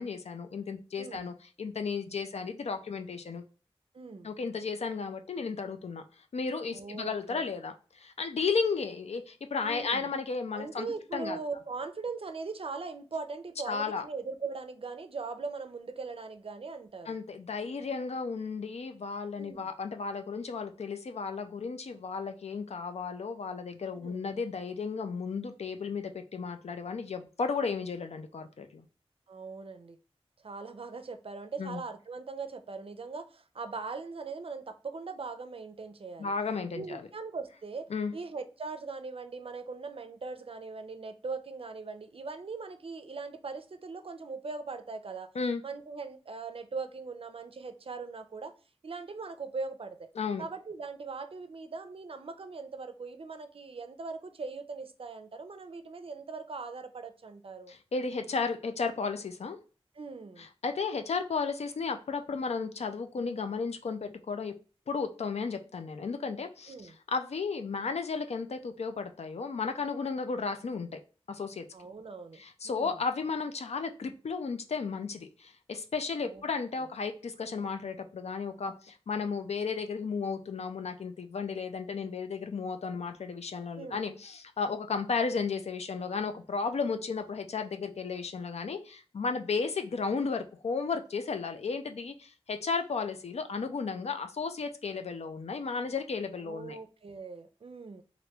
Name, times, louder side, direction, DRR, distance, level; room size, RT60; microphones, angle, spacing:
voice 1, 0.0-3.4 4.2-6.0 6.3-10.9 11.1-11.4 13.7-14.0 17.1-28.8 31.6-31.8 36.2-37.0 37.9-38.1 45.4-45.6 50.2-50.4 57.7-59.6 60.4-64.5 64.9-71.0 71.3-71.7 72.3-96.8, left 5 dB, 85° left, 0.4 m, -34 dB
voice 2, 1.0-1.3 3.9-4.3 6.7-7.5 9.6-10.1 10.5-17.2 19.4-19.7 24.0-24.2 29.3-30.0 30.4-36.3 36.7-45.3 45.6-48.5 48.8-50.1 50.4-57.7 60.0-60.5 66.7-67.0 71.7-73.0 76.2-76.4 83.8-84.0 96.4-98.0, right 4 dB, 60° right, 0.4 m, -40 dB
3.3 x 2.5 x 2.8 m
wide cardioid pair, 55°, 11 cm